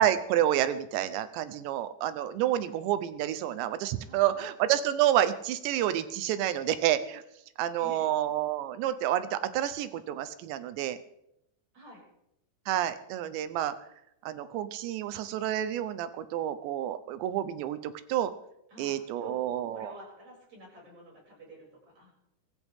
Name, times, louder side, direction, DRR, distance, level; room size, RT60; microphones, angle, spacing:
voice 1, 0.0-7.2 7.6-11.0 12.7-13.7 14.2-18.3 18.8-19.9, right 11 dB, 80° right, 12 dB, 3.1 m, -29 dB
voice 2, 4.0-4.5 7.7-8.1 11.7-12.0 18.7-22.1, right 2 dB, 40° right, -3 dB, 8.1 m, -49 dB
23.5 x 14.5 x 3.7 m, 0.81 s
omnidirectional pair, 5.1 m